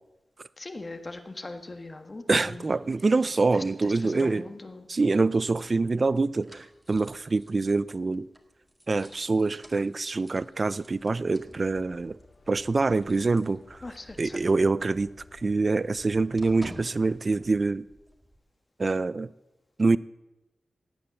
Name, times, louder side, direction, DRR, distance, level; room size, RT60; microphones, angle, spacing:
voice 1, 0.6-2.8 3.5-4.9 13.8-14.4, left 2 dB, 30° left, 1.5 m, -40 dB
voice 2, 2.3-4.4 4.9-8.3 8.9-12.2 12.5-13.8 14.2-17.9 18.8-19.3 19.8-20.0, right 3 dB, 40° right, 0.4 m, -25 dB
sound 1, 5.4-14.1 14.4-14.6 14.9-18.4, right 1 dB, 10° right, 1.8 m, -52 dB
sound 2, 11.6-17.5, left 3 dB, 60° left, 1.8 m, -54 dB
17.0 x 8.8 x 7.1 m
wide cardioid pair, 100°, 0 cm